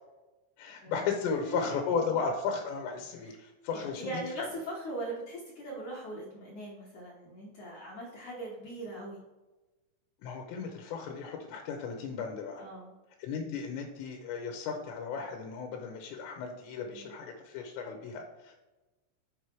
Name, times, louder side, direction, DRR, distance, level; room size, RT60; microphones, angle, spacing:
voice 1, 0.6-4.1 4.4-4.5 10.2-12.6 13.2-18.6, left 5 dB, 90° left, 3 dB, 3.1 m, -35 dB
voice 2, 1.3-1.8 3.2-3.3 3.7-9.2 12.6-12.9 16.9-17.2, right 1 dB, 65° left, -4 dB, 2.0 m, -41 dB
7.6 x 4.8 x 4.5 m, 1.1 s
omnidirectional pair, 5.1 m